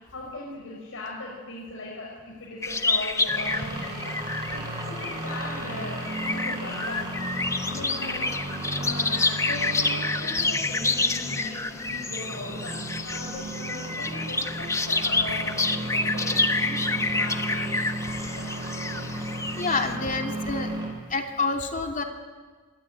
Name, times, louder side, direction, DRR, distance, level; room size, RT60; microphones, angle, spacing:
voice 1, 0.1-4.2 4.5-7.0 7.7-12.8 13.0-17.8 18.3-18.5, left 2 dB, 65° left, -3 dB, 5.9 m, -39 dB
sound 1, 2.6-19.9, left 3 dB, 15° left, 1.2 m, -28 dB
sound 2, 3.3-20.9, right 1 dB, 20° right, 8.0 m, -34 dB
voice 2, 19.5-20.8 21.1-22.0, left 3 dB, 40° left, 3 dB, 2.8 m, -28 dB
27.0 x 22.0 x 9.8 m, 1.4 s
head